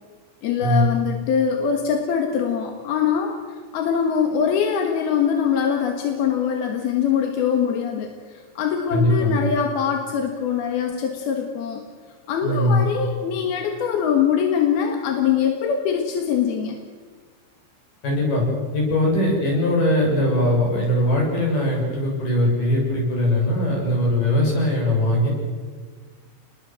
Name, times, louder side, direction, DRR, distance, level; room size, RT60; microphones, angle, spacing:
voice 1, 0.4-3.4 3.7-8.1 8.6-11.8 12.3-16.8, left 7 dB, 60° left, 4 dB, 2.9 m, -23 dB
voice 2, 8.9-9.4 12.4-12.8 18.0-18.4 18.7-25.3, left 1 dB, 40° left, -1 dB, 8.6 m, -20 dB
28.5 x 20.5 x 7.7 m, 1.5 s
omnidirectional pair, 5.8 m